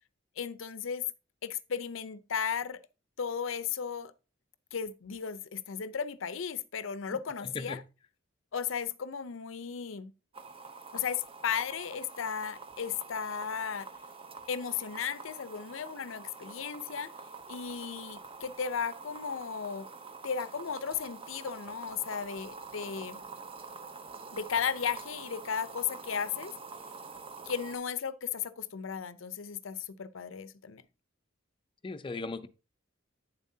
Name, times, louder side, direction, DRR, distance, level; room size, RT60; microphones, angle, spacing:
voice 1, 0.4-1.0 1.4-2.8 3.2-4.1 4.7-7.8 8.5-10.1 10.9-13.9 14.5-17.1 17.5-19.9 20.2-23.2 24.3-26.5 27.5-30.8, left 7 dB, 70° left, 0.6 m, -35 dB
sound 1, 10.3-27.8, right 4 dB, 30° right, 0.8 m, -46 dB
voice 2, 31.8-32.5, left 3 dB, 25° left, 0.5 m, -37 dB
9.0 x 7.2 x 2.7 m
head